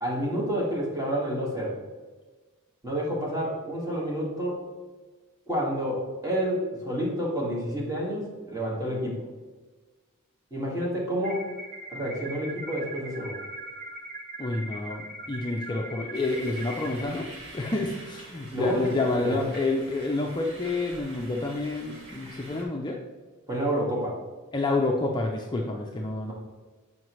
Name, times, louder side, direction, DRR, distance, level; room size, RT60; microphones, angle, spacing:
voice 1, 0.0-1.7 2.8-4.6 5.5-9.2 10.5-11.5 11.9-13.4 18.5-19.4 23.5-24.2 26.3-26.4, equal, 15° right, -5 dB, 1.8 m, -29 dB
sound 1, 11.2-17.0, right 1 dB, 40° right, 1.0 m, -40 dB
voice 2, 14.4-17.3 17.5-23.0 24.5-26.3, left 2 dB, 20° left, 0 dB, 0.5 m, -28 dB
sound 2, 16.1-22.6, right 1 dB, 60° right, 1.7 m, -46 dB
7.6 x 5.7 x 3.1 m, 1.3 s
head